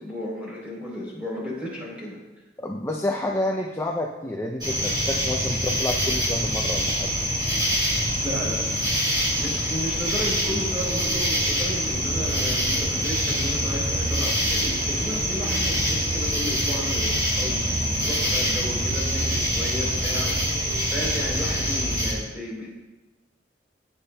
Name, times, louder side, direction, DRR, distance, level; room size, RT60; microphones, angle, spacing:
voice 1, 0.0-2.2 8.2-8.8 9.4-20.4 20.9-22.7, left 1 dB, 5° right, -5 dB, 3.6 m, -33 dB
voice 2, 2.6-7.1, left 1 dB, 15° left, 1 dB, 0.5 m, -29 dB
sound 1, 4.6-22.1, equal, 25° right, 2.6 m, -25 dB
15.5 x 8.4 x 2.3 m, 1.1 s
head